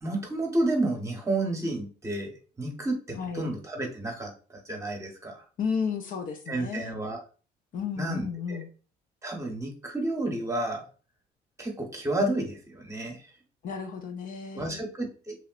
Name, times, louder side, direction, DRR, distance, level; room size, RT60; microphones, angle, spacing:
voice 1, 0.0-5.4 6.5-7.2 8.0-8.6 9.2-10.8 11.6-13.3 14.5-15.5, right 1 dB, 15° right, 2 dB, 0.9 m, -31 dB
voice 2, 3.2-3.5 5.6-7.0 7.7-8.7 13.6-14.8, left 6 dB, 50° left, 5 dB, 0.6 m, -33 dB
3.1 x 2.8 x 2.4 m, 0.37 s
cardioid pair, 110°, 17 cm